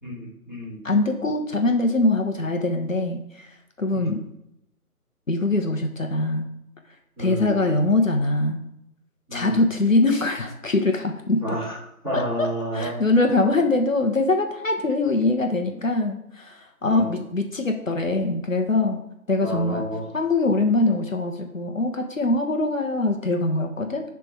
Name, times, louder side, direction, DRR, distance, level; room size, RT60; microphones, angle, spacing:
voice 1, 0.0-0.8 3.9-4.2 7.2-7.6 9.3-9.6 11.4-11.8 12.0-13.0 16.8-17.2 19.4-20.0, right 1 dB, ahead, -17 dB, 2.0 m, -30 dB
voice 2, 0.8-3.5 3.8-4.2 5.3-6.5 7.2-8.6 9.3-11.4 12.1-12.5 12.7-19.0 19.3-19.8 20.1-24.0, left 2 dB, 60° left, 4 dB, 1.2 m, -23 dB
10.5 x 3.6 x 4.8 m, 0.81 s
figure-of-eight pair, 160°, 45 cm